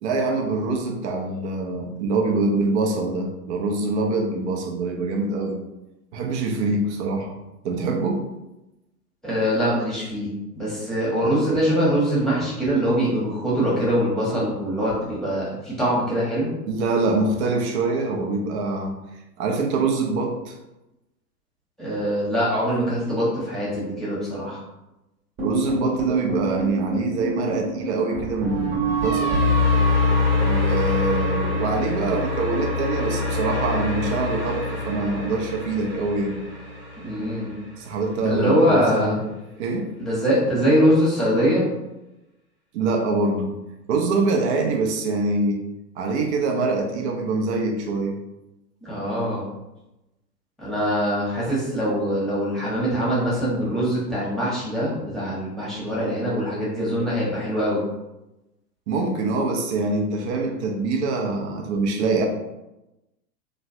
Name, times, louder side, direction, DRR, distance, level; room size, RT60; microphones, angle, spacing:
voice 1, 0.0-5.6 6.1-7.4 7.6-8.2 16.7-19.0 19.4-20.5 25.4-29.4 30.4-36.4 37.8-39.3 39.6-39.9 42.7-43.5 43.9-45.6 46.0-48.2 58.9-62.3, right 3 dB, 45° right, 3 dB, 0.6 m, -24 dB
voice 2, 9.2-16.5 21.8-24.6 37.0-37.6 38.2-39.2 40.0-41.7 48.8-49.5 50.6-57.8, equal, ahead, -8 dB, 1.0 m, -23 dB
sound 1, 25.4-37.6, left 2 dB, 20° right, 1.2 m, -25 dB
3.0 x 2.1 x 2.6 m, 0.96 s
hypercardioid pair, 105°, 49 cm